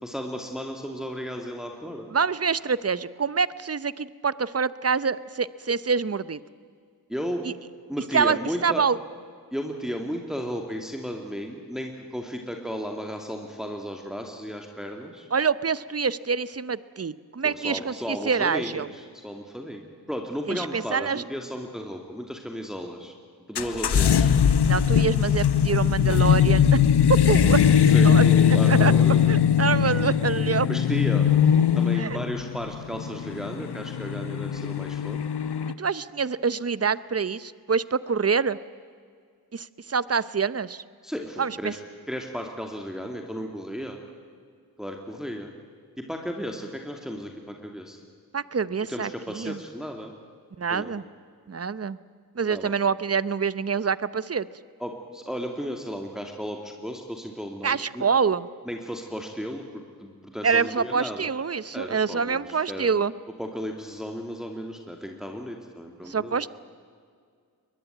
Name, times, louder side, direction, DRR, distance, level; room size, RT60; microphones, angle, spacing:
voice 1, 0.0-2.1 7.1-7.4 7.9-8.8 9.5-15.3 17.4-23.1 23.5-24.3 27.9-29.4 30.7-31.3 31.7-35.2 41.0-41.8 42.1-44.0 44.8-45.5 46.0-48.0 48.9-50.1 50.7-50.9 52.5-52.7 54.8-58.0 58.6-61.3 61.7-62.9 63.4-66.5, equal, ahead, 2 dB, 2.6 m, -34 dB
voice 2, 2.1-6.4 7.4-7.5 8.1-9.0 15.3-18.9 20.5-21.2 24.6-26.8 27.3-27.6 28.0-28.2 28.7-28.9 29.3-30.7 31.9-32.2 35.8-38.6 39.5-40.8 41.4-41.7 48.3-49.6 50.6-51.0 51.5-52.0 52.4-54.5 57.6-58.5 60.4-63.1 66.0-66.5, right 5 dB, 40° right, 17 dB, 0.8 m, -26 dB
sound 1, 23.6-35.7, left 8 dB, 85° left, 0.9 m, -20 dB
22.5 x 21.0 x 9.2 m, 2.1 s
wide cardioid pair, 50°, 39 cm